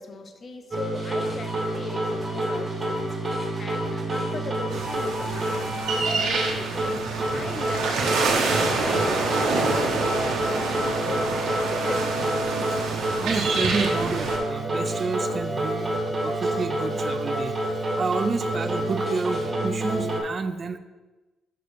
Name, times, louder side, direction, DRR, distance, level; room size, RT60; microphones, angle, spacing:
voice 1, 0.0-3.0 3.3-6.9 7.3-8.3 8.7-11.5 11.8-12.1 19.1-19.2, left 4 dB, 40° left, 6 dB, 0.8 m, -38 dB
sound 1, 0.7-20.2, right 1 dB, 20° right, 1.4 m, -28 dB
sound 2, 4.7-14.4, right 3 dB, 85° right, 1.1 m, -27 dB
voice 2, 12.7-17.6 17.9-20.8, right 4 dB, 35° right, 9 dB, 0.4 m, -30 dB
5.8 x 5.0 x 5.0 m, 1.1 s
cardioid pair, 105°, 0 cm